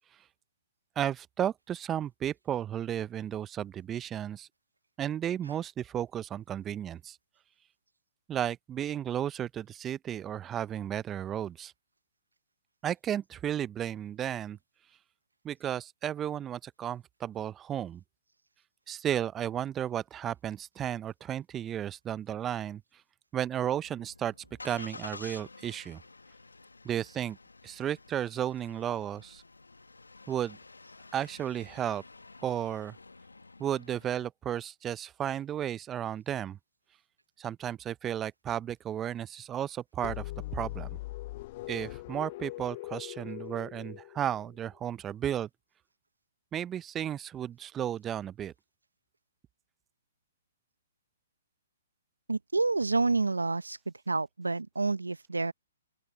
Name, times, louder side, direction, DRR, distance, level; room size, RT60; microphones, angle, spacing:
voice 1, 1.0-4.5 5.0-7.2 8.3-11.7 12.8-14.6 15.4-18.0 18.9-22.8 23.3-24.3 24.6-26.0 26.8-27.4 27.6-29.4 30.3-30.6 31.1-32.0 32.4-32.9 33.6-36.6 37.4-40.9 41.7-45.5 46.5-48.5, right 10 dB, 20° right, 0.6 m, -33 dB
Engine starting, 23.5-34.3, left 3 dB, 90° left, 1.7 m, -51 dB
sound 1, 40.0-44.8, left 18 dB, 40° left, 0.5 m, -41 dB
voice 2, 52.3-53.8 54.1-55.5, right 3 dB, 90° right, 1.0 m, -28 dB
open air
figure-of-eight pair, 130°, 0 cm